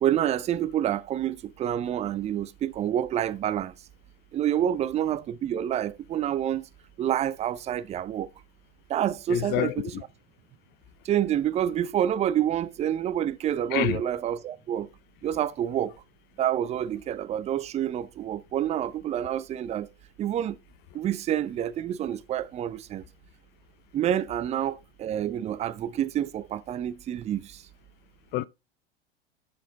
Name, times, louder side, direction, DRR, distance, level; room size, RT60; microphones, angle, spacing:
voice 1, 0.0-3.7 4.3-6.7 7.0-8.3 8.9-9.9 11.0-14.9 15.2-15.9 16.4-19.9 20.2-20.6 20.9-23.0 23.9-27.6, right 10 dB, 20° right, 0.6 m, -28 dB
voice 2, 9.3-10.0 13.7-14.0 28.3-28.4, left 16 dB, 30° left, 0.5 m, -28 dB
12.5 x 4.3 x 4.0 m
figure-of-eight pair, 85°, 32 cm